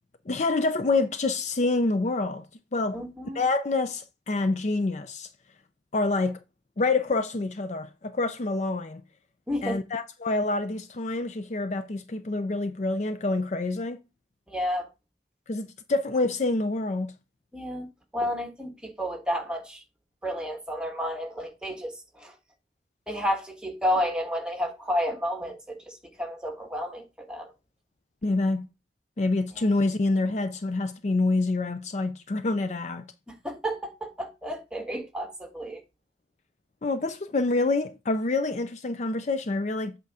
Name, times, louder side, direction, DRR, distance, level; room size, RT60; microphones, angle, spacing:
voice 1, 0.3-2.5 2.7-3.0 3.3-5.3 5.9-6.4 6.8-9.0 9.6-14.0 15.5-17.1 28.2-28.7 29.2-33.1 36.8-40.0, left 3 dB, 40° left, 0.5 m, -27 dB
voice 2, 2.9-3.4 9.5-9.8 14.5-14.9 17.5-17.9 18.1-19.8 20.2-22.3 23.1-27.5 29.6-29.7 33.3-35.8, equal, 5° right, 1.4 m, -31 dB
8.1 x 3.8 x 4.8 m
head